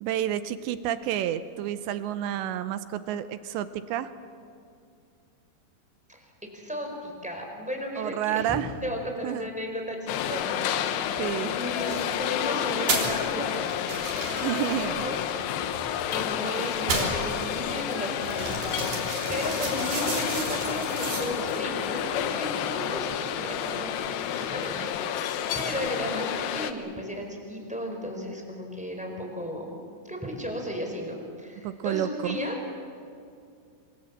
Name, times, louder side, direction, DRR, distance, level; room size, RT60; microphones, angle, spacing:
voice 1, 0.0-4.1 8.0-8.7 9.2-9.5 11.2-11.6 14.3-15.1 31.6-32.4, right 11 dB, 80° right, 12 dB, 2.9 m, -30 dB
voice 2, 6.1-10.5 11.5-13.6 15.0-15.3 16.1-18.8 19.3-23.9 24.3-32.6, equal, ahead, 1 dB, 3.9 m, -35 dB
sound 1, 10.1-26.7, left 9 dB, 75° left, 2.8 m, -30 dB
sound 2, 11.8-12.1 12.7-13.2 13.5-16.3 16.7-21.5, right 3 dB, 40° right, 4.8 m, -33 dB
27.0 x 23.5 x 7.5 m, 2.4 s
omnidirectional pair, 5.5 m